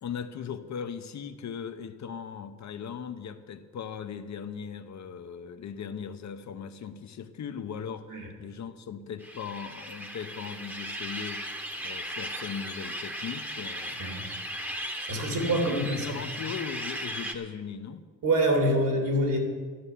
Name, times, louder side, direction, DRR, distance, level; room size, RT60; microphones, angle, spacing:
voice 1, 0.0-8.1 8.4-11.4 11.8-14.0 15.1-18.0, left 7 dB, 55° left, 9 dB, 0.8 m, -38 dB
sound 1, 9.2-17.3, equal, 5° right, 1.0 m, -37 dB
voice 2, 15.1-16.2 18.2-19.4, right 1 dB, 70° right, 2 dB, 3.0 m, -26 dB
13.0 x 6.9 x 10.0 m, 1.5 s
wide cardioid pair, 160°, 33 cm